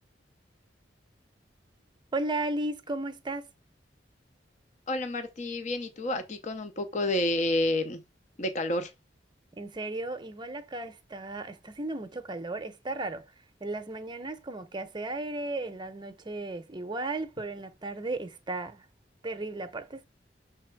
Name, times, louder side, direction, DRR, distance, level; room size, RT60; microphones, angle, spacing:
voice 1, 2.1-3.5 9.5-13.2 13.6-18.9 19.2-20.1, right 2 dB, 25° right, 0.8 m, -35 dB
voice 2, 4.9-8.0 8.4-8.9, left 1 dB, 40° left, 0.7 m, -29 dB
6.7 x 3.5 x 4.5 m
head